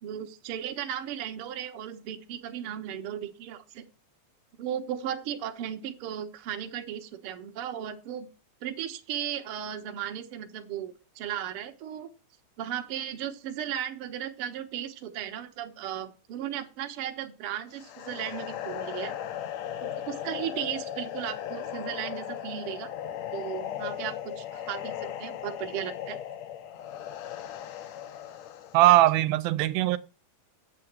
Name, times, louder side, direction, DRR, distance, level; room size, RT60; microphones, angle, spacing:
voice 1, 0.0-3.8 4.6-8.3 8.6-12.1 12.6-19.1 19.8-22.9 23.3-26.2, right 10 dB, 65° right, 1.4 m, -36 dB
sound 1, 17.7-28.9, left 10 dB, 75° left, 1.7 m, -37 dB
voice 2, 28.7-30.0, right 16 dB, 85° right, 2.5 m, -20 dB
8.4 x 7.7 x 6.0 m
omnidirectional pair, 4.2 m